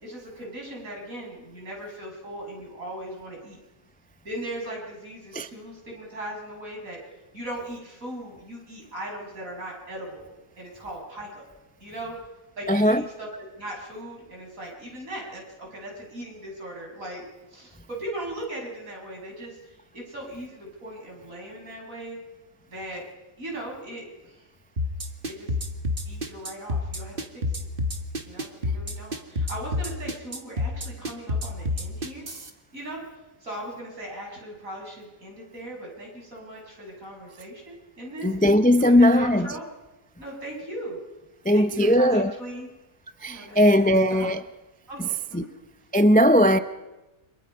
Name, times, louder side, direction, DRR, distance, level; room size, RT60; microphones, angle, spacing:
voice 1, 0.0-3.6 4.2-7.0 7.3-10.3 10.6-11.5 11.8-12.2 12.6-13.3 13.6-17.2 17.5-22.2 22.7-23.1 23.4-24.5 25.3-25.6 26.1-27.7 28.2-32.3 32.7-33.1 33.4-38.3 38.7-39.6 40.2-41.0 41.5-42.7 43.3-44.3 44.9-45.5, right 1 dB, 60° right, 7.5 m, -38 dB
voice 2, 12.7-13.0 38.2-39.5 41.4-42.3 43.2-44.4 45.3-45.4 45.9-46.6, equal, 10° left, 0.4 m, -18 dB
sound 1, 24.8-32.5, left 2 dB, 35° right, 2.1 m, -28 dB
29.5 x 27.0 x 5.6 m
omnidirectional pair, 1.6 m